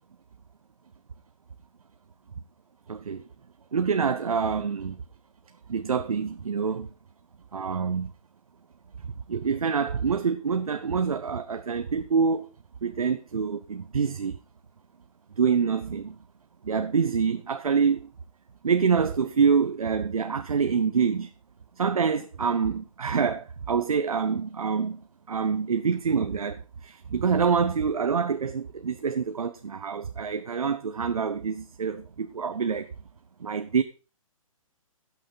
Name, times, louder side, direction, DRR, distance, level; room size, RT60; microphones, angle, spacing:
voice 1, 2.9-3.2 3.7-5.0 5.7-6.9 7.5-8.1 9.3-12.5 12.8-14.4 15.4-16.2 16.6-18.1 18.6-21.3 21.8-25.0 25.3-32.9 33.4-33.8, right 6 dB, 80° right, 0.9 m, -26 dB
17.0 x 6.4 x 4.0 m
hypercardioid pair, 135°, 18 cm